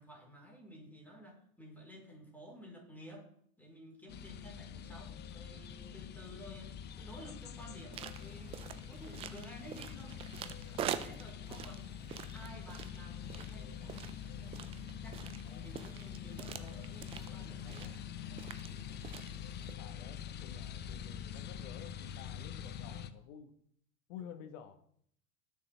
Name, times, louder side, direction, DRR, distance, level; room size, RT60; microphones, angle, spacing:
voice 1, 0.0-3.3 3.6-10.2 10.6-12.0 12.3-14.5 15.0-18.0 18.3-19.1, equal, 5° left, -1 dB, 4.2 m, -53 dB
sound 1, 4.1-23.1, left 8 dB, 25° left, 0.7 m, -45 dB
sound 2, 7.9-19.7, right 10 dB, 15° right, 0.3 m, -46 dB
voice 2, 15.4-15.8 19.8-23.5 24.1-24.8, left 9 dB, 55° left, 8 dB, 1.4 m, -51 dB
18.5 x 6.9 x 3.4 m, 0.66 s
hypercardioid pair, 105°, 45 cm